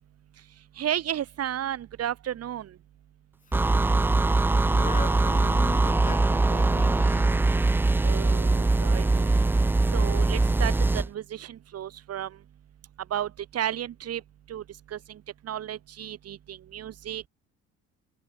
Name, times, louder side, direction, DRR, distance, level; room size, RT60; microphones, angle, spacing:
voice 1, 0.8-2.7 8.0-9.4 9.9-12.4 13.1-14.2 14.5-14.6 14.9-17.3, right 11 dB, 50° right, 5.0 m, -33 dB
sound 1, 3.5-11.1, right 2 dB, 5° right, 0.3 m, -22 dB
voice 2, 4.6-7.5, left 6 dB, 25° left, 2.2 m, -38 dB
cardioid pair, 140°, 31 cm